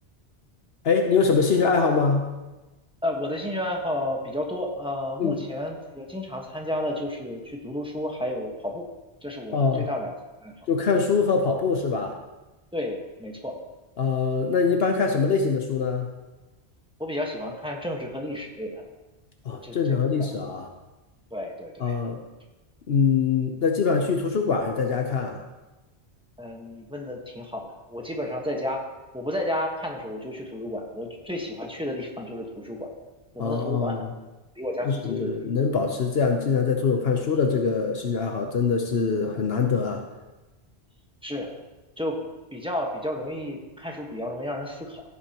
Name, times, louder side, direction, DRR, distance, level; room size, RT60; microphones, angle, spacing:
voice 1, 0.8-2.3 5.2-5.4 9.5-9.9 10.7-12.2 14.0-16.1 19.4-20.7 21.8-22.2 22.9-25.4 33.4-34.1 34.9-40.0, left 5 dB, 65° left, 3 dB, 1.0 m, -23 dB
voice 2, 3.0-8.9 9.2-10.1 10.4-10.7 12.7-13.6 17.0-18.8 19.6-20.3 21.3-22.0 26.4-28.9 29.1-32.9 33.3-34.0 34.6-35.5 41.2-41.5 42.0-42.2 42.5-45.0, left 1 dB, 5° right, 0 dB, 1.3 m, -32 dB
15.5 x 8.5 x 3.0 m, 1.1 s
omnidirectional pair, 1.1 m